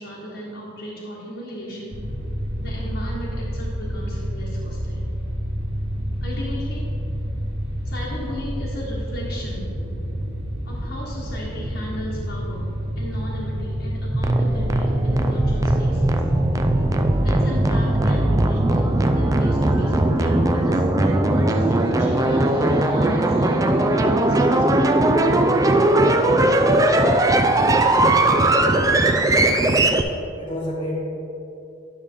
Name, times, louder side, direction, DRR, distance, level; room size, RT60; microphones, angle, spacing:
voice 1, 0.0-1.9 2.6-5.1 6.2-6.9 7.8-9.8 10.6-16.3 17.2-24.9 25.4-25.8, equal, 60° left, -6 dB, 1.3 m, -35 dB
sound 1, 1.9-20.6, equal, 80° right, 1.5 m, -28 dB
sound 2, 14.1-30.0, right 1 dB, 15° right, 0.3 m, -19 dB
voice 2, 27.9-28.9 29.3-29.4 30.4-31.0, equal, 20° left, -8 dB, 1.1 m, -30 dB
10.5 x 6.3 x 3.6 m, 2.7 s
head